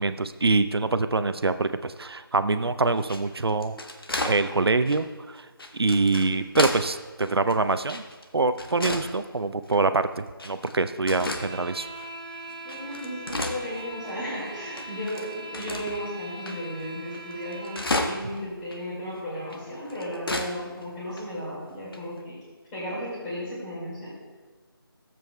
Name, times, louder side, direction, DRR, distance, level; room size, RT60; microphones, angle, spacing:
voice 1, 0.0-3.8 4.2-5.5 5.7-8.0 8.3-11.9, right 3 dB, 90° right, 11 dB, 0.5 m, -25 dB
sound 1, 3.0-4.4 4.9-5.0 5.6-6.9 7.2-8.3 8.6-9.1 9.6-9.8 10.4-10.8 11.1-11.5 12.0-12.1 12.5-14.1 14.4-14.5 14.8-16.0 16.5-16.6 16.8-16.9 17.1-18.4 18.7-18.8 19.5-20.5 20.8-20.9 21.1-21.2 21.9-22.2, left 2 dB, 70° left, 1.1 m, -32 dB
sound 2, 11.1-18.2, right 1 dB, 20° right, 0.8 m, -41 dB
voice 2, 12.6-17.8 18.1-22.4 22.7-24.1, equal, 10° left, -9 dB, 2.1 m, -35 dB
14.0 x 7.6 x 2.3 m, 1.4 s
figure-of-eight pair, 165°, 13 cm